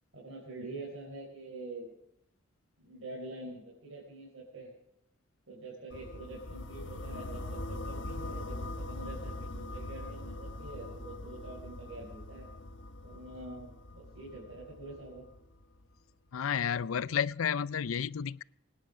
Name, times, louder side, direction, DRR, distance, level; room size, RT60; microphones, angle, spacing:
voice 1, 0.1-1.9 2.8-4.7 5.5-12.5 13.0-15.2, right 2 dB, 75° right, 4.6 m, -45 dB
sound 1, 5.9-15.8, left 2 dB, 65° left, 1.4 m, -42 dB
voice 2, 16.3-18.4, left 7 dB, 90° left, 0.5 m, -31 dB
24.5 x 10.0 x 5.0 m
head